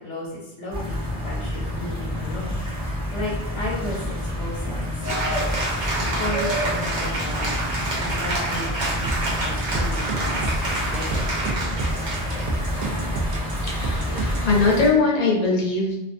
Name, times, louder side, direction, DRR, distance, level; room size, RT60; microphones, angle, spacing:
voice 1, 0.0-5.4 6.0-10.5 10.8-11.3, left 1 dB, 85° left, -4 dB, 1.0 m, -34 dB
sound 1, 0.7-14.9, left 1 dB, 5° right, 0.6 m, -29 dB
Cheering / Applause, 5.0-12.5, right 1 dB, 80° right, 1.1 m, -28 dB
sound 2, 9.1-14.5, right 2 dB, 65° right, 0.4 m, -28 dB
voice 2, 13.6-16.0, left 3 dB, 45° left, -3 dB, 0.6 m, -21 dB
2.5 x 2.3 x 2.5 m, 0.95 s
omnidirectional pair, 1.2 m